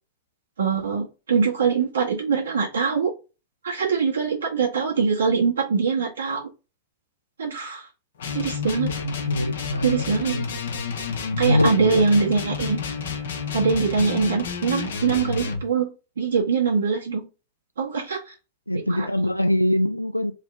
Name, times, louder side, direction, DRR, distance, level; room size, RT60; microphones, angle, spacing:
voice 1, 0.6-3.1 3.6-6.5 7.4-7.9 8.3-8.9 9.8-10.4 11.4-12.8 13.5-17.2 17.8-18.3 19.0-19.1, right 5 dB, 70° right, 1.2 m, -23 dB
sound 1, 8.2-15.6, left 5 dB, 60° left, 0.8 m, -30 dB
voice 2, 9.0-10.5 11.3-12.1 14.0-14.1 18.7-20.3, left 1 dB, 90° left, 0.4 m, -24 dB
3.1 x 2.9 x 3.3 m
figure-of-eight pair, 90°, 0 cm